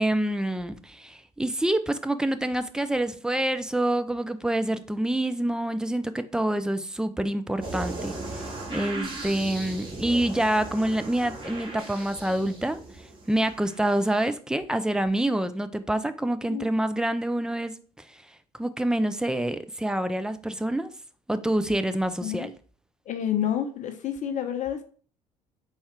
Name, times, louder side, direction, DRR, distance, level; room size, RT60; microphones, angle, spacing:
voice 1, 0.0-8.1 8.7-12.8 13.3-17.8 18.6-20.9 21.3-22.5, right 1 dB, 5° right, 0.4 m, -27 dB
sound 1, 7.6-14.2, right 2 dB, 30° right, 2.0 m, -37 dB
voice 2, 23.1-24.8, left 10 dB, 45° left, 0.7 m, -29 dB
4.2 x 2.4 x 4.4 m
figure-of-eight pair, 55°, 18 cm